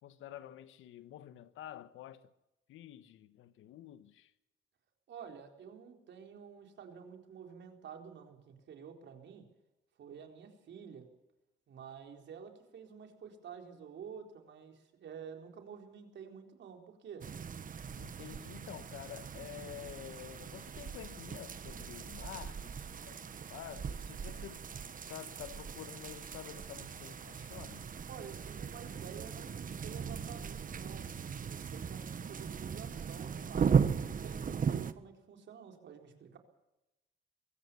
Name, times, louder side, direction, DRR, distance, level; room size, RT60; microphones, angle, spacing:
voice 1, 0.0-2.3 2.7-4.3 18.0-23.2 23.5-24.7 25.0-27.9, left 12 dB, 85° left, 1.3 m, -49 dB
voice 2, 5.1-9.5 10.0-11.1 11.7-17.3 28.1-31.1 31.5-36.4, right 7 dB, 65° right, 4.1 m, -50 dB
sound 1, 17.2-34.9, right 6 dB, 45° right, 1.3 m, -37 dB
23.0 x 16.5 x 7.0 m
cardioid pair, 90°, 20 cm